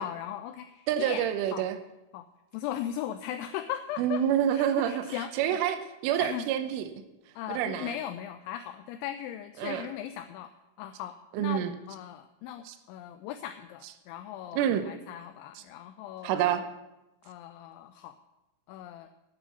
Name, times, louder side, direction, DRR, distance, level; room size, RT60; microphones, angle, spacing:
voice 1, 0.0-1.7 2.1-2.3 2.5-4.2 4.5-5.3 6.2-6.5 7.4-10.5 10.8-16.5 17.3-18.1 18.7-19.1, left 11 dB, 85° left, 8 dB, 2.7 m, -38 dB
voice 2, 0.9-1.8 4.0-6.9 7.5-8.0 9.6-9.9 11.3-11.7 12.7-12.8 14.5-14.9 15.6-15.7 16.2-16.6, right 10 dB, 85° right, 9 dB, 3.3 m, -28 dB
10.0 x 8.8 x 6.9 m, 0.97 s
omnidirectional pair, 5.7 m